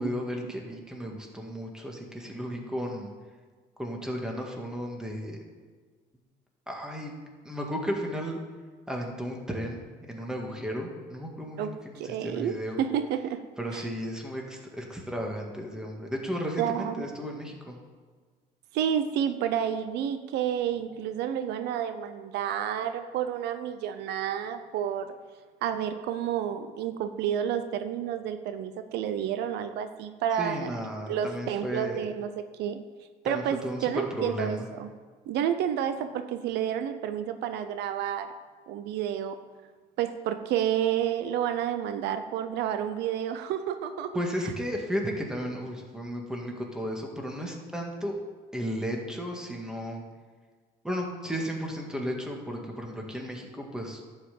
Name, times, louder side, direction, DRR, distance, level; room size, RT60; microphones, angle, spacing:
voice 1, 0.0-3.1 3.8-5.4 6.7-7.1 7.4-8.4 8.9-12.8 13.6-17.8 30.3-32.0 33.2-34.7 44.1-48.1 48.5-50.0 50.8-54.0, equal, 5° right, 0 dB, 2.0 m, -34 dB
voice 2, 11.6-13.4 13.7-13.8 16.6-17.1 18.7-25.1 25.6-30.7 31.1-32.3 32.6-32.8 33.2-34.9 35.3-38.3 38.7-39.4 40.0-44.2, right 9 dB, 80° right, 10 dB, 0.7 m, -30 dB
11.5 x 5.7 x 7.8 m, 1.5 s
cardioid pair, 110°, 17 cm